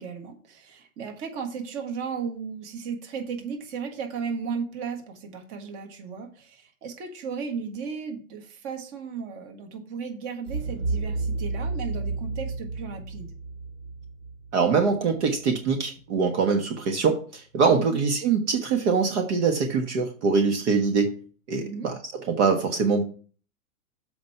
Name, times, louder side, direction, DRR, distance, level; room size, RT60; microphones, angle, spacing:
voice 1, 0.0-13.3 17.7-18.0 21.6-21.9, right 6 dB, 35° right, 5 dB, 1.6 m, -35 dB
sound 1, 10.4-15.3, right 3 dB, 70° right, 3.8 m, -31 dB
voice 2, 14.5-21.2 21.5-22.0 22.3-23.0, right 5 dB, 55° right, 5 dB, 1.4 m, -23 dB
7.2 x 4.7 x 5.6 m, 0.42 s
hypercardioid pair, 140°, 42 cm